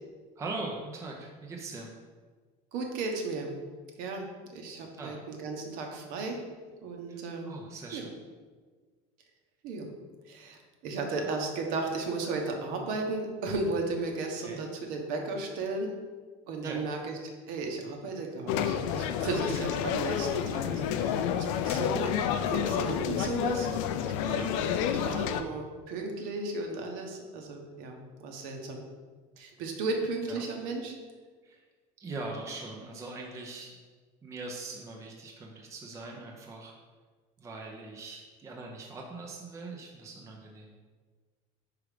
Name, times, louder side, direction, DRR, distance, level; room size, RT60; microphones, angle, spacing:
voice 1, 0.4-1.9 5.0-5.2 7.1-7.2 7.4-8.1 11.2-11.3 14.4-14.6 16.6-16.9 19.2-19.4 24.2-24.6 29.6-29.7 30.3-30.4 31.4-31.6 32.0-33.8 34.2-36.7 37.4-40.7, right 3 dB, 20° right, 0 dB, 0.7 m, -41 dB
voice 2, 2.7-3.5 4.0-6.4 6.7-7.5 7.9-8.0 9.6-9.9 10.3-15.9 16.5-17.2 17.5-22.1 22.4-23.7 24.0-24.7 24.9-28.8 29.4-31.0, right 3 dB, 60° right, 2 dB, 1.1 m, -35 dB
sound 1, 18.5-25.4, left 9 dB, 80° left, 0.5 m, -29 dB
5.0 x 4.8 x 4.9 m, 1.5 s
cardioid pair, 160°, 16 cm